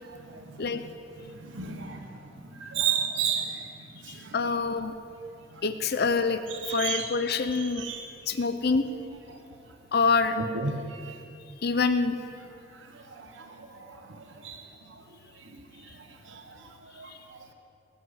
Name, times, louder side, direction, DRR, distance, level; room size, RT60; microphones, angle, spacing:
voice 1, 0.0-0.6 1.3-3.7 4.0-4.3 6.5-7.0 7.8-8.0 10.4-11.2 12.8-14.6 14.9-15.0 15.5-16.7 17.0-17.5, right 6 dB, 80° right, 4 dB, 1.2 m, -34 dB
voice 2, 4.1-4.9 5.6-6.4 6.7-7.8 8.3-8.8 9.9-10.4 11.6-12.2, left 4 dB, 60° left, 10 dB, 0.7 m, -26 dB
19.5 x 8.6 x 8.1 m, 2.6 s
head